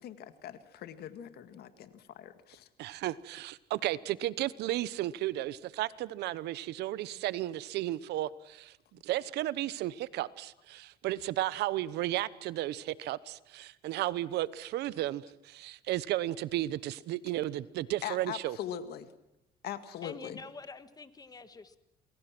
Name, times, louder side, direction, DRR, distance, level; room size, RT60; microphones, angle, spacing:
voice 1, 0.0-2.7 18.0-19.1 19.6-20.4, left 10 dB, 70° left, 11 dB, 2.0 m, -41 dB
voice 2, 2.8-8.8 9.0-18.6, right 15 dB, 80° right, 18 dB, 1.0 m, -34 dB
voice 3, 20.0-21.8, left 4 dB, 20° left, 11 dB, 1.7 m, -46 dB
28.5 x 21.5 x 6.1 m, 0.85 s
cardioid pair, 110°, 17 cm